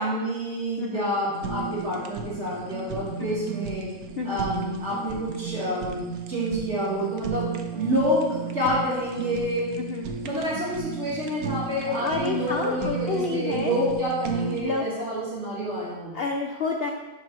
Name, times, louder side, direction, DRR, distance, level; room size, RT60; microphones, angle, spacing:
voice 1, 0.0-3.9 4.2-9.7 10.2-16.2, equal, 50° right, -8 dB, 2.1 m, -28 dB
voice 2, 0.8-1.1 3.2-3.3 4.2-4.4 9.8-10.1 12.0-13.7 14.6-14.9 16.1-16.9, left 4 dB, 70° left, 2 dB, 0.5 m, -29 dB
Fire, 1.3-14.6, right 6 dB, 80° right, 1.1 m, -34 dB
5.2 x 4.1 x 5.7 m, 1.1 s
omnidirectional pair, 1.5 m